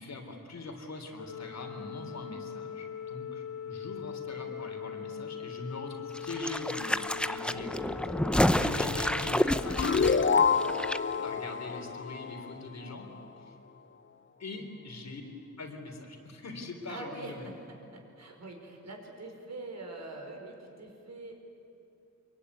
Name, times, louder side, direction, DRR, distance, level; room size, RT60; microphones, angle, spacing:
voice 1, 0.0-8.1 8.6-10.3 11.2-13.1 13.4-13.5 14.4-15.2 15.6-17.5, left 2 dB, 60° left, 4 dB, 3.6 m, -42 dB
Organ, 1.2-12.3, left 8 dB, 80° left, 0.8 m, -41 dB
sound 1, 6.1-11.0 11.3-11.4, left 1 dB, 5° left, 0.7 m, -29 dB
voice 2, 8.4-9.1 10.6-11.5 14.5-14.6 16.9-21.3, right 2 dB, 60° right, 2 dB, 5.0 m, -45 dB
sound 2, 9.8-13.0, left 5 dB, 40° left, 0.9 m, -28 dB
24.5 x 23.5 x 9.8 m, 2.7 s
wide cardioid pair, 120°, 31 cm